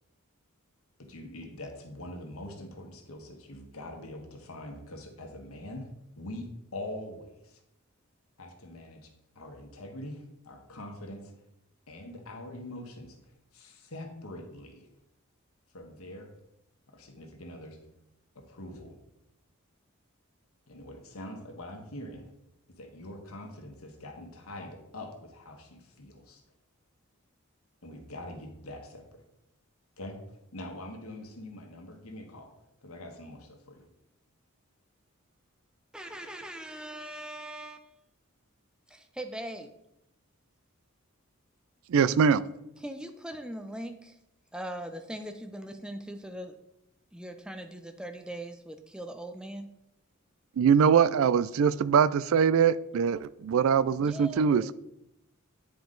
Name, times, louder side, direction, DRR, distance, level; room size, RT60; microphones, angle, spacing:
voice 1, 1.0-5.9 6.2-7.6 8.4-9.1 9.3-11.3 11.9-13.2 13.5-14.9 15.7-16.3 16.9-17.8 18.3-18.9 20.7-22.3 22.7-26.4 27.8-29.2 30.0-30.2 30.5-32.5 32.8-33.8, left 1 dB, 80° left, 3 dB, 1.4 m, -43 dB
voice 2, 35.9-37.9 38.9-39.7 42.8-44.1 44.5-46.5 47.1-49.7 54.0-54.7, right 1 dB, 5° right, 7 dB, 0.5 m, -40 dB
voice 3, 41.9-42.4 50.6-54.7, right 7 dB, 70° right, 18 dB, 0.3 m, -23 dB
9.3 x 4.9 x 3.8 m, 0.84 s
head